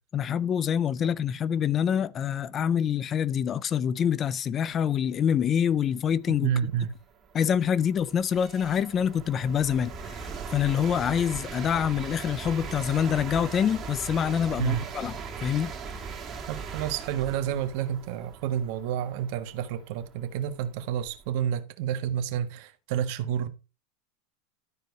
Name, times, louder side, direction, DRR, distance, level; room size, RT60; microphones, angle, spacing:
voice 1, 0.1-6.5 7.3-15.1 15.4-15.7, left 8 dB, 30° left, 0.5 m, -26 dB
sound 1, 5.9-6.0 6.6-21.4, right 5 dB, 25° right, 2.7 m, -40 dB
voice 2, 6.3-7.0 14.6-14.8 16.5-23.5, right 9 dB, 60° right, 1.5 m, -29 dB
13.0 x 4.7 x 4.6 m
supercardioid pair, 140°, 0 cm